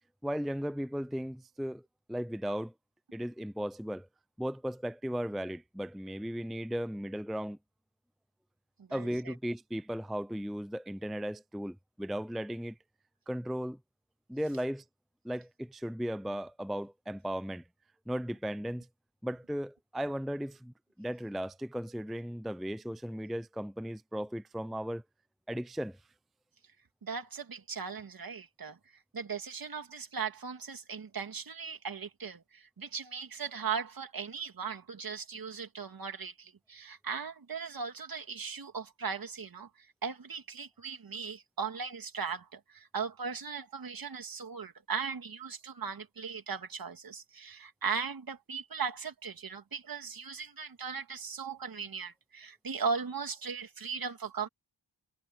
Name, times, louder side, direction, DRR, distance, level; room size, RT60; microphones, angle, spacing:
voice 1, 0.2-1.8 2.1-2.7 3.1-4.1 4.4-7.6 8.9-12.7 13.3-13.8 14.3-14.8 15.2-17.6 18.1-18.9 19.2-25.0 25.5-26.0, equal, ahead, 0.5 m, -36 dB
voice 2, 8.8-9.3 27.0-28.8 29.1-39.7 40.0-54.5, right 6 dB, 55° right, 2.4 m, -38 dB
wide cardioid pair, 85°, 42 cm